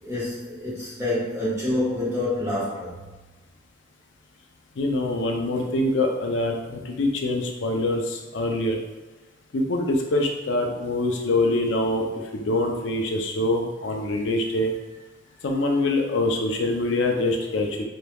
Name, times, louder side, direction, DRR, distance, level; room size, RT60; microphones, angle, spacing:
voice 1, 0.0-2.9, left 1 dB, 15° right, -8 dB, 1.3 m, -27 dB
voice 2, 4.8-8.8 9.5-12.1 12.3-14.7 15.4-17.9, left 2 dB, 80° left, 2 dB, 0.5 m, -24 dB
4.1 x 3.4 x 2.3 m, 1.2 s
head